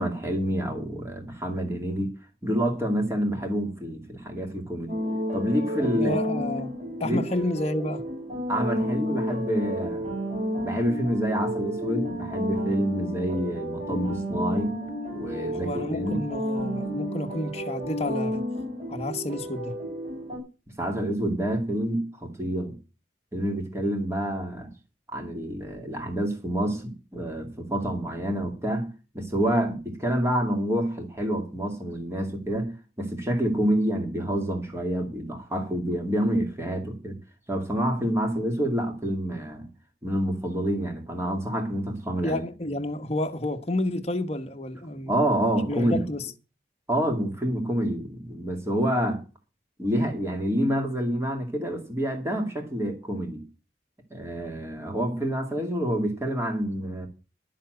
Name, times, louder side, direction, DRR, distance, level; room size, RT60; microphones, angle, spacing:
voice 1, 0.0-2.1 2.4-5.0 5.3-6.2 7.0-7.2 8.5-10.1 10.6-14.8 15.1-16.3 20.8-22.7 23.3-24.7 25.1-28.9 29.1-37.1 37.5-39.7 40.0-42.4 45.1-46.1 46.9-49.2 49.8-53.4 54.1-57.1, equal, 15° right, 2.3 m, -27 dB
sound 1, 4.9-20.4, equal, 35° right, 7.0 m, -31 dB
voice 2, 5.8-8.0 15.6-18.4 18.9-19.8 42.2-45.1 45.7-46.3, left 1 dB, 35° left, 1.1 m, -30 dB
11.5 x 7.3 x 7.8 m
head